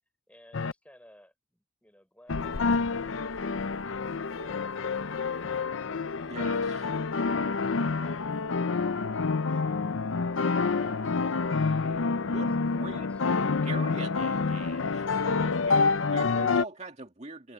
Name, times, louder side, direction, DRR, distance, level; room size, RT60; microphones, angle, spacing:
voice 1, 0.3-3.8 5.8-6.4 12.1-14.0, equal, 5° left, 5.7 m, -58 dB
sound 1, 0.5-0.7 2.3-16.6, left 4 dB, 70° left, 0.6 m, -28 dB
voice 2, 6.3-6.9 10.6-11.0 12.2-13.1 13.6-17.5, right 3 dB, 35° right, 2.2 m, -43 dB
head